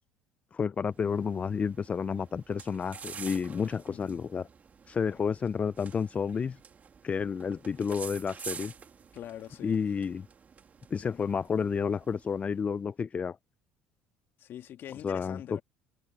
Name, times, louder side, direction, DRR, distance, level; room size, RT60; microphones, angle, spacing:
voice 1, 0.5-4.5 4.9-6.6 7.0-8.7 9.6-10.3 10.9-13.4 15.0-15.6, left 6 dB, 30° left, 0.4 m, -30 dB
sound 1, 0.9-12.6, right 6 dB, 35° right, 2.4 m, -48 dB
voice 2, 3.9-4.2 9.1-9.9 14.4-15.6, left 11 dB, 55° left, 2.2 m, -44 dB
hypercardioid pair, 70°, 4 cm